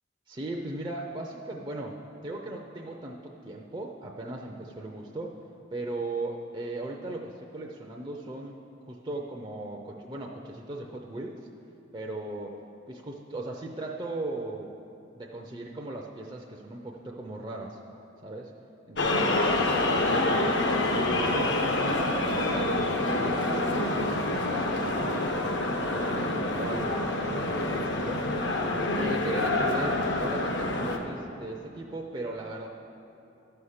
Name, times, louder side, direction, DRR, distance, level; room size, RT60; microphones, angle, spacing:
voice 1, 0.3-5.4 5.7-8.5 8.9-11.4 11.9-12.5 12.9-14.7 15.1-17.8 18.2-18.5 18.9-19.5 19.7-20.6 20.9-24.2 24.5-25.6 25.9-28.3 28.9-32.7, right 2 dB, 25° right, 0 dB, 0.5 m, -37 dB
sound 1, 19.0-31.0, left 2 dB, 65° left, 0.8 m, -27 dB
12.5 x 5.6 x 6.5 m, 2.9 s
head